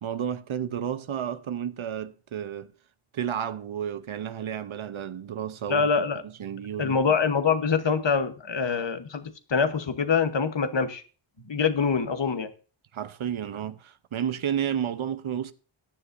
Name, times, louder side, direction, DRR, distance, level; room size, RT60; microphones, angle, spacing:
voice 1, 0.0-2.7 3.1-5.9 6.2-7.0 12.9-15.5, right 9 dB, 75° right, 0.8 m, -31 dB
voice 2, 5.7-6.2 6.8-11.0 11.5-12.5, left 5 dB, 60° left, 1.1 m, -25 dB
14.5 x 9.8 x 2.6 m
wide cardioid pair, 65°, 50 cm